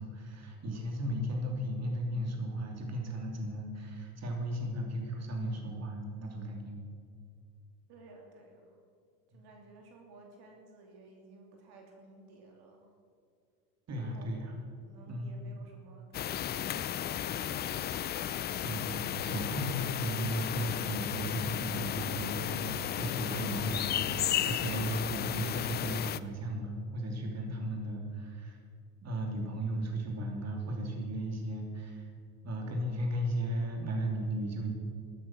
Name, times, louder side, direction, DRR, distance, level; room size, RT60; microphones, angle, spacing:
voice 1, 0.0-6.8 9.3-9.4 13.9-14.6 15.1-15.3 18.6-28.6 29.0-32.1 32.4-34.7, right 1 dB, 35° right, 1 dB, 3.0 m, -35 dB
voice 2, 7.9-8.8 9.3-12.9 14.0-14.3 14.9-18.2, right 2 dB, 55° right, 1 dB, 3.0 m, -55 dB
sound 1, 16.1-26.2, left 11 dB, 25° left, 0.3 m, -34 dB
13.0 x 12.0 x 6.1 m, 2.4 s
hypercardioid pair, 95°, 46 cm